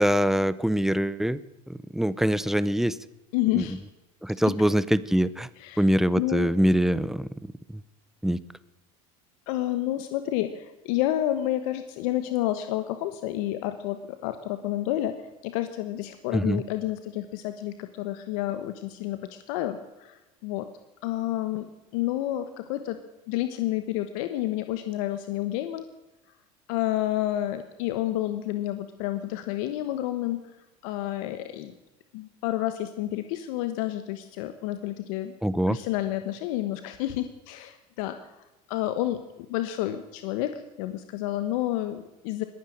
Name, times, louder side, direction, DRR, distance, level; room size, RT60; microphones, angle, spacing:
voice 1, 0.0-1.4 1.7-3.0 3.6-3.7 4.2-5.5 5.8-7.3 7.7-7.8 8.2-8.4 16.3-16.6 35.4-35.8, equal, ahead, 17 dB, 0.7 m, -23 dB
voice 2, 3.3-3.8 5.6-5.8 6.1-6.5 9.5-15.2 15.4-20.7 21.0-21.7 21.9-23.0 23.3-25.8 26.7-30.4 30.8-31.7 32.1-35.3 35.7-38.3 38.7-42.4, left 14 dB, 75° left, 9 dB, 1.2 m, -30 dB
21.5 x 9.5 x 6.5 m, 1.0 s
supercardioid pair, 105°, 18 cm